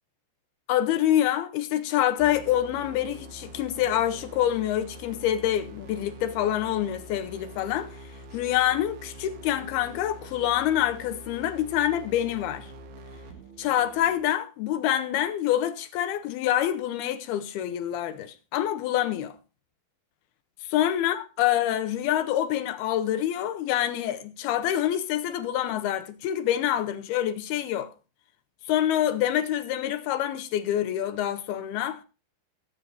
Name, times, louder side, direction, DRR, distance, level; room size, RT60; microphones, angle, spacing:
voice 1, 0.7-7.9 8.3-12.7 13.6-19.4 20.6-27.9 28.7-32.0, left 12 dB, 75° left, 2.6 m, -26 dB
sound 1, 2.2-14.2, right 1 dB, 70° right, 3.1 m, -45 dB
19.5 x 8.2 x 2.6 m
omnidirectional pair, 4.8 m